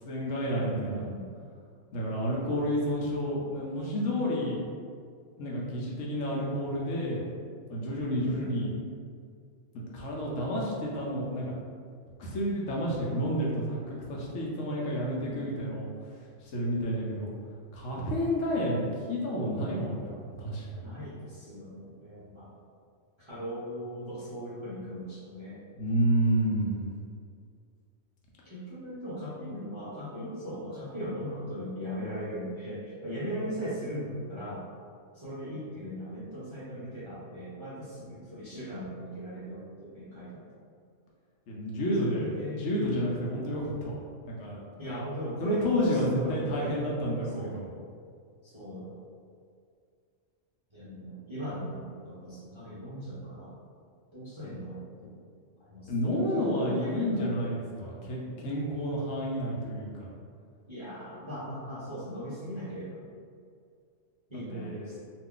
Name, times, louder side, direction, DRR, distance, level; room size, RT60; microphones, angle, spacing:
voice 1, 0.1-1.1 1.9-4.6 5.4-7.2 7.7-8.7 9.9-11.6 12.2-15.9 16.4-17.3 17.7-20.9 25.8-26.8 41.5-42.3 42.6-44.6 45.4-47.7 55.9-60.1 64.5-65.0, equal, 70° left, -4 dB, 0.9 m, -30 dB
voice 2, 0.7-1.3 15.2-15.7 20.8-22.5 23.2-25.6 28.4-34.7 35.1-40.5 42.0-42.7 44.8-46.8 47.3-47.6 48.4-48.9 50.7-53.6 54.1-55.2 55.6-55.9 56.3-57.4 60.7-62.9 64.3-65.0, equal, 35° right, -11 dB, 0.5 m, -38 dB
2.5 x 2.3 x 3.6 m, 2.2 s
omnidirectional pair, 1.5 m